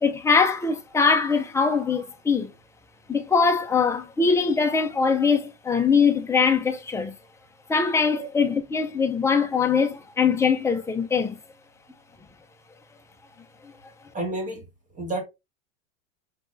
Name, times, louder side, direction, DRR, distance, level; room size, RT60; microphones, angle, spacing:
voice 1, 0.0-2.5 3.1-7.1 7.7-11.4, left 5 dB, 10° left, 0.5 m, -22 dB
voice 2, 14.1-14.6 14.9-15.2, right 2 dB, 20° right, 1.6 m, -30 dB
4.9 x 3.5 x 2.6 m
supercardioid pair, 120°, 38 cm